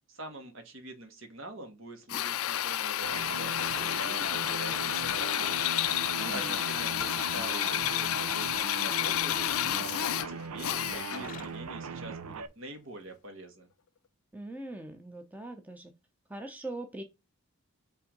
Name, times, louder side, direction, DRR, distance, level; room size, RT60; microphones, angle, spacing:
voice 1, 0.1-5.7 6.3-9.4 9.8-13.7, right 1 dB, 60° right, 1.8 m, -45 dB
Drill, 2.1-11.4, left 13 dB, 70° left, 0.4 m, -31 dB
sound 1, 3.0-12.5, right 5 dB, 90° right, 0.6 m, -39 dB
sound 2, 3.5-8.1 8.9-10.7 11.0-11.7 12.3-12.5 13.1-13.2, left 5 dB, 35° left, 0.7 m, -52 dB
voice 2, 6.2-6.5 14.3-15.9 16.3-17.0, right 2 dB, 5° right, 0.7 m, -41 dB
5.5 x 3.6 x 5.2 m
head